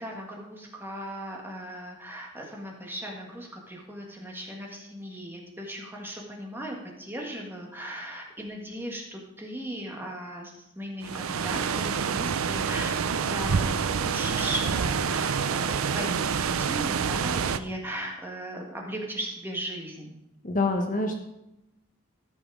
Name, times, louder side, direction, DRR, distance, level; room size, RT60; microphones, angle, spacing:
voice 1, 0.0-20.2, equal, 10° right, -1 dB, 1.7 m, -37 dB
sound 1, 11.0-17.6, right 6 dB, 85° right, 0.5 m, -27 dB
voice 2, 20.4-21.2, left 2 dB, 40° left, 3 dB, 1.2 m, -26 dB
14.0 x 6.1 x 4.8 m, 0.88 s
head